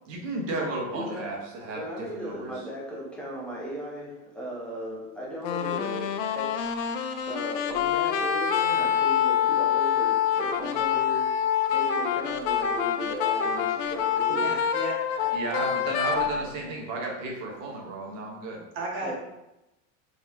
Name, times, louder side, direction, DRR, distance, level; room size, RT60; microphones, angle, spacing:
voice 1, 0.1-1.8 2.1-2.5 15.3-18.7, right 2 dB, 75° right, -1 dB, 1.2 m, -33 dB
voice 2, 0.9-6.7 7.3-14.9 19.0-19.1, equal, 5° left, -6 dB, 0.4 m, -37 dB
sound 1, 5.4-16.4, left 8 dB, 75° left, 0.5 m, -26 dB
voice 3, 14.3-15.3 18.7-19.1, right 1 dB, 30° right, -1 dB, 0.8 m, -34 dB
4.1 x 2.8 x 3.6 m, 0.94 s
cardioid pair, 180°, 39 cm